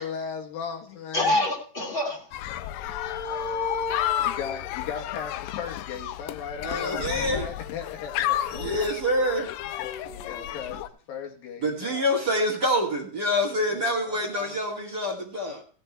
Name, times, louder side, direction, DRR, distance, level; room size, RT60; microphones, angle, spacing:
voice 1, 0.0-1.4 2.5-2.6 4.2-8.8 10.1-12.3 13.4-14.6, left 7 dB, 65° left, 2.5 m, -37 dB
voice 2, 1.1-2.3 2.8-4.6 8.5-9.4 9.7-10.6, left 2 dB, 15° left, 2.0 m, -30 dB
sound 1, 2.3-10.9, left 13 dB, 80° left, 2.4 m, -32 dB
voice 3, 6.6-7.5 8.5-9.5 11.6-15.6, equal, 35° right, 1.9 m, -26 dB
16.5 x 6.9 x 4.3 m
omnidirectional pair, 5.1 m